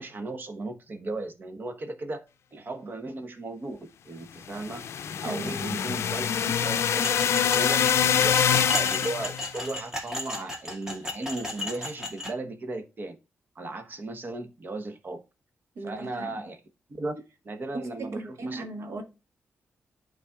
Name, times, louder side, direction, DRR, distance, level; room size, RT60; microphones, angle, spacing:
voice 1, 0.0-2.2 2.5-4.8 5.2-13.2 13.5-15.2 15.8-16.6 16.9-18.6, right 2 dB, 45° right, 1.2 m, -36 dB
sound 1, 4.5-9.5, left 8 dB, 70° left, 0.4 m, -25 dB
voice 2, 5.2-5.8 15.8-16.3 17.7-19.0, right 2 dB, 75° right, 1.3 m, -36 dB
sound 2, 7.0-12.3, left 1 dB, 10° right, 2.1 m, -35 dB
11.0 x 4.1 x 2.4 m
cardioid pair, 80°, 5 cm